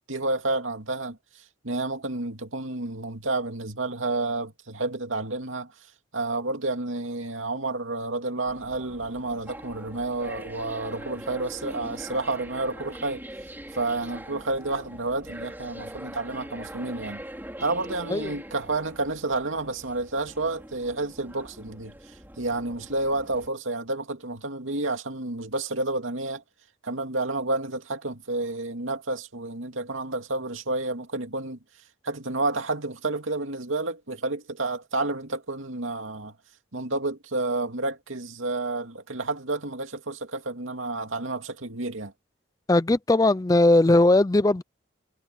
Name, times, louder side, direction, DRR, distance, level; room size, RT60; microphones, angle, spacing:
voice 1, 0.1-1.2 1.6-5.7 6.1-13.2 13.7-17.2 17.6-21.9 22.4-26.4 26.8-31.6 32.0-36.3 36.7-42.1, right 2 dB, 90° right, 2.5 m, -30 dB
sound 1, 8.5-23.5, right 1 dB, 10° right, 3.7 m, -42 dB
voice 2, 42.7-44.6, left 2 dB, 20° left, 0.4 m, -19 dB
head